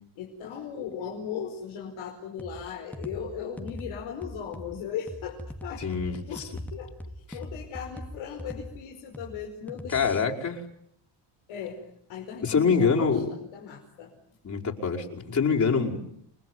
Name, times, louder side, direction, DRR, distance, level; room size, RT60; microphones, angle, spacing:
voice 1, 0.2-5.8 6.3-10.2 11.5-14.1, left 8 dB, 90° left, 1 dB, 5.1 m, -38 dB
sound 1, 2.4-10.2, equal, 5° left, 2.2 m, -42 dB
voice 2, 5.8-6.5 9.9-10.6 12.4-13.3 14.4-16.0, left 5 dB, 40° left, -1 dB, 5.3 m, -25 dB
30.0 x 20.5 x 9.6 m, 0.70 s
cardioid pair, 120°, 46 cm